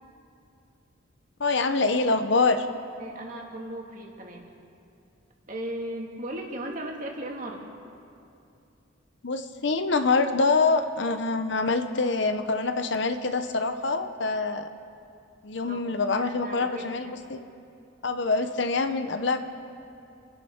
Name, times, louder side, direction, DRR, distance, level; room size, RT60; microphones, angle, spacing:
voice 1, 1.4-2.7 9.2-14.7 15.4-17.4 18.0-19.4, left 3 dB, 60° left, 9 dB, 0.8 m, -25 dB
voice 2, 3.0-4.5 5.5-7.7 15.7-17.1, right 1 dB, 40° right, 0 dB, 2.0 m, -37 dB
27.0 x 11.0 x 4.5 m, 2.6 s
head